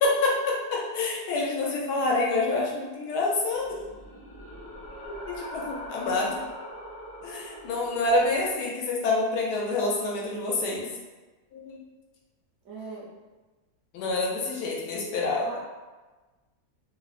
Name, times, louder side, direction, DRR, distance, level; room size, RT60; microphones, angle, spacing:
voice 1, 0.0-3.8 5.0-6.4 7.2-10.9 11.5-11.8 13.9-15.5, left 2 dB, 80° left, -2 dB, 1.2 m, -27 dB
sound 1, 3.5-8.6, equal, 30° left, 0.4 m, -42 dB
voice 2, 12.6-13.1 15.5-15.6, right 4 dB, 70° right, -4 dB, 1.0 m, -39 dB
3.0 x 2.0 x 2.3 m, 1.2 s
omnidirectional pair, 1.8 m